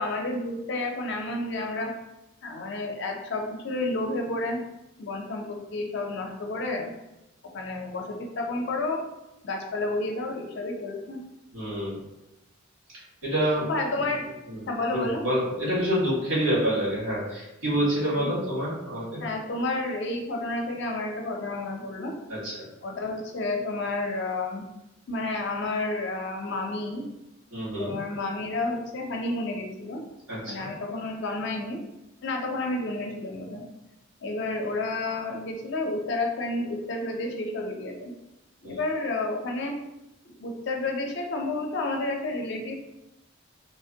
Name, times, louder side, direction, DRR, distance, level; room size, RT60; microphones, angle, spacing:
voice 1, 0.0-1.9 2.4-4.6 5.0-6.9 7.5-9.0 9.4-11.2 13.7-14.3 14.7-15.2 17.8-18.3 19.2-22.1 22.8-24.6 25.1-27.0 27.8-30.0 30.4-31.8 32.2-33.6 34.2-38.1 38.6-39.8 40.4-42.7, left 2 dB, 55° left, 2 dB, 0.5 m, -30 dB
voice 2, 11.5-12.0 13.2-13.7 14.5-19.2 22.3-22.6 27.5-28.0 30.3-30.7 38.6-38.8, equal, 90° right, -6 dB, 1.4 m, -27 dB
3.0 x 2.1 x 2.7 m, 0.94 s
head